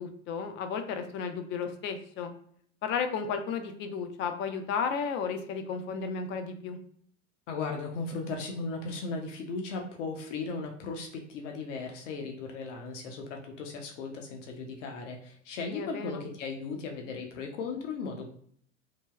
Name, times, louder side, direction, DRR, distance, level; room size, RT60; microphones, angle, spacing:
voice 1, 0.0-2.3 2.8-6.8 15.7-16.2, left 6 dB, 30° left, 7 dB, 0.4 m, -33 dB
voice 2, 7.5-18.3, left 4 dB, 70° left, 2 dB, 0.7 m, -37 dB
3.2 x 2.1 x 2.3 m, 0.62 s
hypercardioid pair, 85°, 38 cm